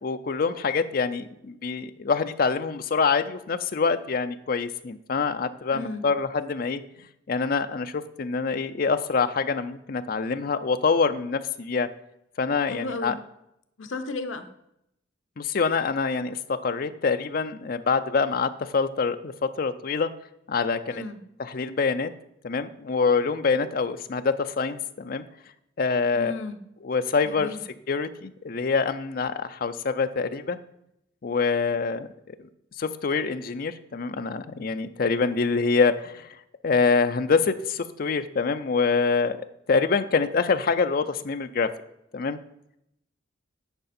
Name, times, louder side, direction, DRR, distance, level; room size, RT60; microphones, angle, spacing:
voice 1, 0.0-6.8 7.3-11.9 12.4-13.1 15.4-20.1 20.5-21.0 21.5-22.1 22.4-25.2 25.8-26.3 26.8-27.5 27.9-30.6 31.2-32.1 32.8-36.3 36.6-39.4 39.7-41.7 42.1-42.4, left 4 dB, 50° left, 10 dB, 0.5 m, -25 dB
voice 2, 5.7-6.0 12.7-13.2 13.8-14.5 20.9-21.2 26.1-26.6 27.2-27.6, left 2 dB, 85° left, 9 dB, 0.8 m, -34 dB
10.5 x 5.0 x 4.3 m, 0.80 s
head